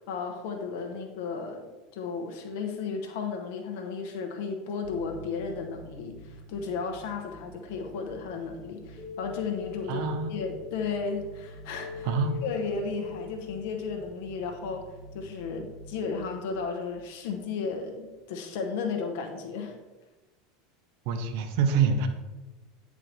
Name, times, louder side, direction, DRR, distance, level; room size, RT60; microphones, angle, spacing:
voice 1, 0.0-10.0 10.3-12.1 12.4-14.9 15.1-19.8, left 5 dB, 55° left, 4 dB, 1.2 m, -34 dB
sound 1, 4.8-18.0, right 1 dB, 80° right, 2.3 m, -49 dB
sound 2, 9.0-14.5, left 11 dB, 20° left, 1.4 m, -42 dB
voice 2, 9.9-10.3 12.0-12.4 21.1-22.1, right 5 dB, 55° right, 7 dB, 0.8 m, -26 dB
8.8 x 4.9 x 4.0 m, 1.1 s
figure-of-eight pair, 75°, 0 cm